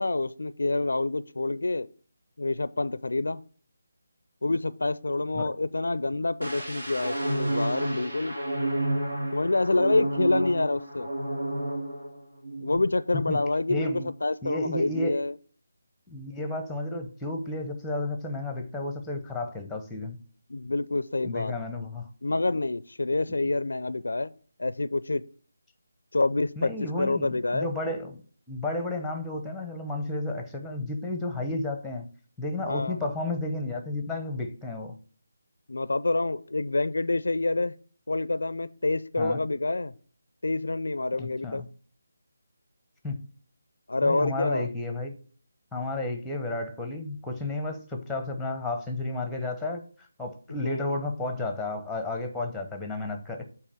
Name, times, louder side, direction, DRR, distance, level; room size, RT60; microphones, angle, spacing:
voice 1, 0.0-1.9 2.4-3.4 4.4-8.4 9.3-11.1 12.6-15.3 20.5-21.5 22.2-24.3 24.6-25.2 26.1-26.7 27.0-27.7 32.6-33.0 35.7-37.7 38.1-39.9 40.4-41.6 43.9-44.7 50.6-50.9, left 2 dB, 70° left, 0.4 m, -27 dB
sound 1, 6.4-12.1 12.4-12.7, right 1 dB, 75° right, 1.9 m, -30 dB
voice 2, 13.7-14.1 14.4-15.2 16.1-20.2 21.2-22.1 26.6-28.2 28.5-32.1 32.4-34.9 39.2-39.4 41.2-41.7 43.0-43.2 44.0-45.2 45.7-49.8 50.2-53.4, left 2 dB, ahead, 0.9 m, -32 dB
8.3 x 3.0 x 6.0 m
figure-of-eight pair, 155°, 0 cm